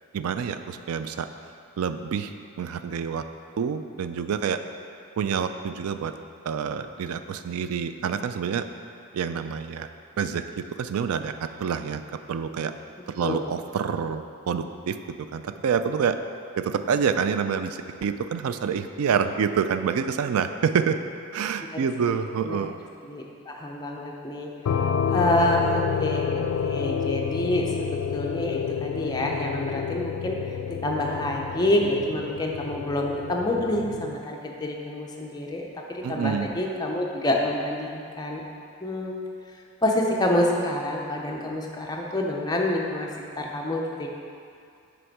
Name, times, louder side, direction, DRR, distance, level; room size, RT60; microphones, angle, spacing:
voice 1, 0.1-1.3 1.8-2.3 2.6-3.2 3.6-4.6 5.2-6.1 6.5-8.6 9.1-9.9 10.2-12.0 12.3-12.7 13.1-16.2 16.6-21.0 21.3-22.8 36.0-36.5, right 7 dB, 85° right, 9 dB, 0.3 m, -27 dB
voice 2, 23.1-24.8 25.1-30.4 30.8-38.5 38.8-39.2 39.8-44.1, left 1 dB, 20° left, -1 dB, 0.6 m, -27 dB
sound 1, 24.7-34.2, left 7 dB, 80° left, 0.3 m, -29 dB
6.3 x 5.2 x 4.6 m, 2.4 s
head